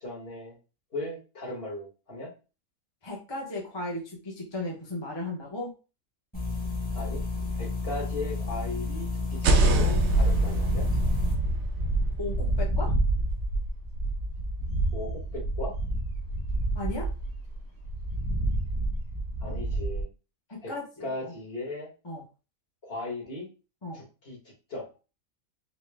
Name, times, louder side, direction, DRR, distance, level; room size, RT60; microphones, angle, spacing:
voice 1, 0.0-0.6 0.9-2.3 6.9-7.2 7.6-10.9 14.9-15.7 19.4-20.1 20.6-20.7 21.0-21.9 22.8-23.5 23.9-24.4 24.7-24.9, left 2 dB, 45° left, -3 dB, 1.7 m, -37 dB
voice 2, 3.0-5.7 12.2-12.9 16.7-17.1 19.4-19.5 20.5-21.3 22.0-22.2 23.8-24.0, left 2 dB, 25° left, -2 dB, 0.6 m, -36 dB
sound 1, 6.3-11.3, left 3 dB, 5° left, 1.0 m, -32 dB
sound 2, 9.3-13.1, right 2 dB, 65° right, 0.8 m, -27 dB
sound 3, 9.8-20.0, right 2 dB, 70° left, 1.7 m, -28 dB
4.1 x 2.1 x 3.3 m, 0.32 s
omnidirectional pair, 1.5 m